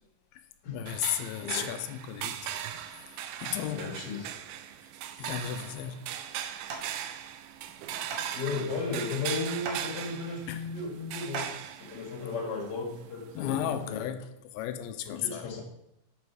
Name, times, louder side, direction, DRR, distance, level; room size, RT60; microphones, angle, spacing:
voice 1, 0.7-2.5 3.4-4.0 5.2-6.1 10.5-10.6 13.4-15.5, left 10 dB, 85° left, 2.5 m, -34 dB
sound 1, 0.9-14.1, right 10 dB, 85° right, 1.9 m, -39 dB
voice 2, 1.4-1.7 3.7-4.3 8.3-11.5 11.9-14.1 15.0-15.6, left 4 dB, 40° left, 1.6 m, -35 dB
sound 2, 6.0-12.2, right 4 dB, 65° right, 2.6 m, -43 dB
9.2 x 4.8 x 4.8 m
omnidirectional pair, 4.4 m